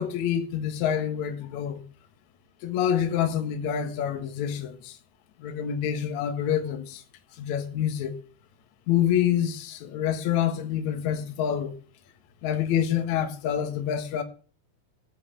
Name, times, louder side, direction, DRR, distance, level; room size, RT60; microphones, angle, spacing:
voice 1, 0.0-1.8 2.6-5.0 5.4-7.0 7.4-8.2 8.9-11.8 12.4-14.2, left 9 dB, 60° left, 2.0 m, -27 dB
17.0 x 5.6 x 7.2 m
omnidirectional pair, 5.3 m